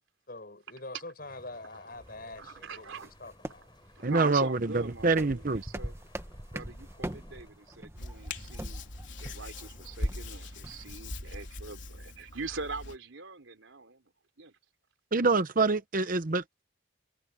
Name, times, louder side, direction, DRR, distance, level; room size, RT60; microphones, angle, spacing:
voice 1, 0.3-3.7, left 2 dB, 50° left, 6.7 m, -45 dB
sound 1, 1.2-12.4, left 2 dB, 25° left, 6.7 m, -60 dB
sound 2, 1.9-11.1, right 1 dB, 15° right, 1.2 m, -44 dB
voice 2, 2.4-3.1 3.4-3.5 3.9-6.0 6.5-8.8 9.2-14.1 14.4-14.6, right 3 dB, 85° right, 3.4 m, -42 dB
voice 3, 4.0-5.6 15.1-16.6, right 3 dB, 45° right, 0.8 m, -26 dB
Hands, 7.9-13.0, left 1 dB, 70° left, 3.9 m, -40 dB
head